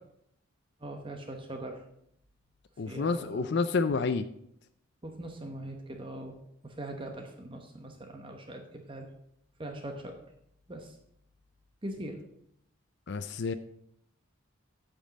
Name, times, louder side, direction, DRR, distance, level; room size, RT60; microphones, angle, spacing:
voice 1, 0.8-1.9 2.9-3.6 5.0-6.4 6.6-9.1 9.6-10.2 10.7-11.0 11.8-12.2, right 1 dB, 25° right, 4 dB, 0.9 m, -41 dB
voice 2, 2.8-4.2 13.1-13.5, left 4 dB, 55° left, 10 dB, 0.4 m, -29 dB
9.2 x 5.2 x 7.4 m, 0.73 s
head